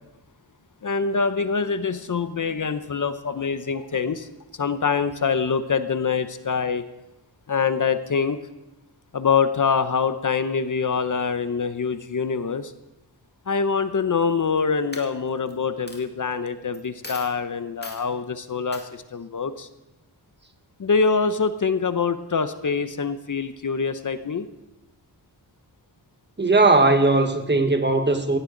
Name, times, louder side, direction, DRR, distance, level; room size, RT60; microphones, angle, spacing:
voice 1, 0.8-4.3 4.6-6.8 7.5-8.4 9.1-12.7 13.5-19.7 20.8-24.5, left 5 dB, 50° left, 0.8 m, -24 dB
Coin (dropping), 14.3-14.6 14.9-15.5 15.9-16.0 16.7-16.8 17.0-17.3 17.8-18.0 18.7-18.9, left 2 dB, 25° left, 2.2 m, -39 dB
voice 2, 26.4-28.4, right 3 dB, 25° right, 1.4 m, -18 dB
17.5 x 15.5 x 3.9 m
wide cardioid pair, 125°, 41 cm